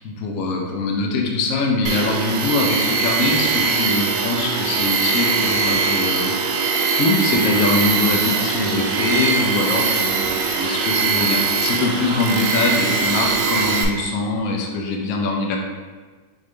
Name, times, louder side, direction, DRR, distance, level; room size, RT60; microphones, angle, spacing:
voice 1, 0.0-6.3 6.9-10.3 10.6-15.6, left 3 dB, 80° left, 0 dB, 0.7 m, -22 dB
Tools, 1.9-13.9, right 5 dB, 85° right, 1.4 m, -21 dB
3.8 x 3.6 x 3.1 m, 1.4 s
omnidirectional pair, 2.2 m